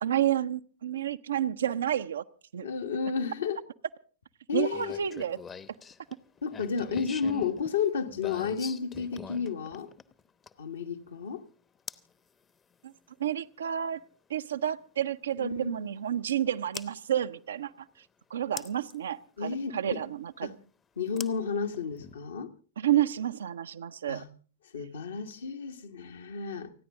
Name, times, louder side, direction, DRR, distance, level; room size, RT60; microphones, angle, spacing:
voice 1, 0.0-2.2 2.5-2.7 4.5-5.4 12.8-12.9 13.2-14.0 14.3-17.7 18.3-20.6 22.8-24.2, right 11 dB, 65° right, 0.6 m, -30 dB
voice 2, 2.6-3.6 4.5-5.1 6.4-9.9 10.6-11.4 15.4-15.9 19.4-20.0 20.4-20.5 21.0-22.5 24.1-24.3 24.7-26.7, left 6 dB, 70° left, 1.4 m, -32 dB
sound 1, 4.7-10.7 11.9-12.1 14.0-14.1 16.7-16.9 18.6-19.0 21.2-22.2, left 6 dB, 20° left, 0.9 m, -43 dB
29.5 x 10.0 x 3.6 m
figure-of-eight pair, 90°, 0 cm